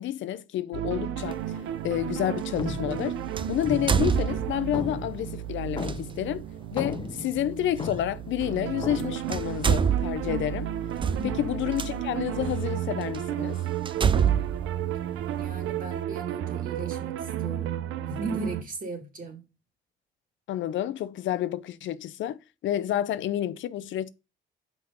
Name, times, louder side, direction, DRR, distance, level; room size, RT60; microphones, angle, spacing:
voice 1, 0.0-1.4 1.8-3.2 3.5-6.4 6.7-10.7 11.2-13.6 20.5-24.1, left 12 dB, 75° left, 0.5 m, -29 dB
sound 1, 0.7-18.6, right 11 dB, 85° right, 0.7 m, -33 dB
sound 2, 1.3-1.4 3.4-4.8 5.8-6.0 7.8-7.9 8.9-9.0 9.3-11.9 12.6-12.7 13.1-13.2 13.9-15.6, right 7 dB, 25° right, 0.4 m, -26 dB
sound 3, 1.9-2.2 2.6-4.4 4.7-6.4 6.6-8.3 8.8-9.1, left 4 dB, 25° left, 0.7 m, -37 dB
voice 2, 15.4-19.4, right 3 dB, 45° right, 2.3 m, -37 dB
5.7 x 5.1 x 5.3 m
cardioid pair, 90°, 20 cm